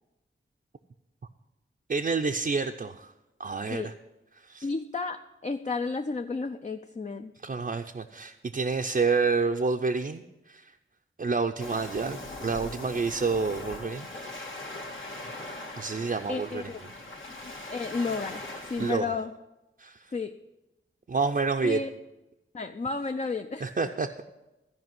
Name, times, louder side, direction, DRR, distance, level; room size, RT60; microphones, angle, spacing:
voice 1, 1.9-3.1 3.4-3.9 4.4-4.6 7.4-10.7 11.2-14.1 15.8-16.6 18.8-19.1 19.8-20.0 21.1-21.8 23.6-24.2, right 4 dB, 45° right, 3 dB, 0.5 m, -28 dB
voice 2, 4.6-7.3 16.3-16.8 17.7-19.3 20.1-20.3 21.6-21.9 22.5-23.9, left 4 dB, 35° left, 7 dB, 0.5 m, -32 dB
Waves surf, 11.6-19.0, left 2 dB, 70° left, 1.8 m, -40 dB
14.0 x 5.2 x 9.2 m, 0.99 s
wide cardioid pair, 85°, 21 cm